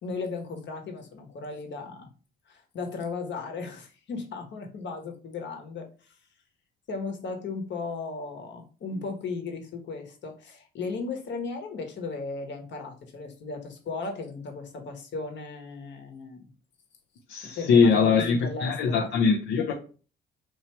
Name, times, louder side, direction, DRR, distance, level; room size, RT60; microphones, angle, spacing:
voice 1, 0.0-2.1 2.5-6.2 6.9-16.4 17.6-19.1, left 4 dB, 65° left, 1.2 m, -36 dB
voice 2, 17.3-19.7, left 5 dB, 85° left, 0.6 m, -22 dB
3.0 x 2.7 x 4.4 m
cardioid pair, 90°, 20 cm